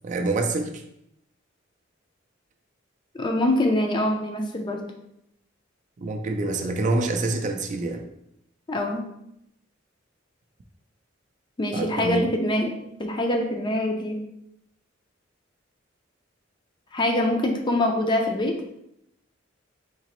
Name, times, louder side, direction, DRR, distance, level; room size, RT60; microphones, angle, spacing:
voice 1, 0.0-0.8 6.0-8.1 11.7-12.3, right 2 dB, 40° right, 4 dB, 0.4 m, -26 dB
voice 2, 3.1-4.8 8.7-9.1 11.6-12.7 13.0-14.2 16.9-18.6, left 1 dB, 25° left, 3 dB, 0.4 m, -24 dB
3.9 x 2.9 x 3.0 m, 0.79 s
head